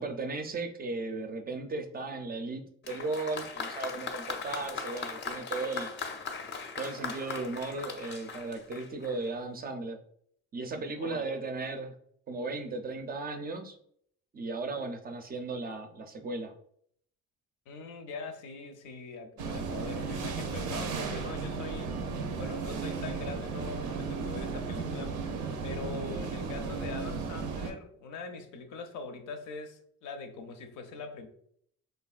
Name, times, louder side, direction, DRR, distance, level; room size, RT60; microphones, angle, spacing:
voice 1, 0.0-5.9 6.8-10.0 10.5-11.9 12.3-13.8 14.3-16.5 26.1-26.2, right 3 dB, 30° right, 0.4 m, -36 dB
Applause, 2.8-9.3, left 5 dB, 35° left, 0.5 m, -39 dB
voice 2, 11.0-11.4 17.7-21.9 22.4-25.2 25.6-31.3, left 4 dB, 85° left, 0.6 m, -42 dB
sound 1, 19.4-27.7, right 4 dB, 80° right, 0.5 m, -35 dB
3.3 x 2.4 x 2.3 m
cardioid pair, 90°, 30 cm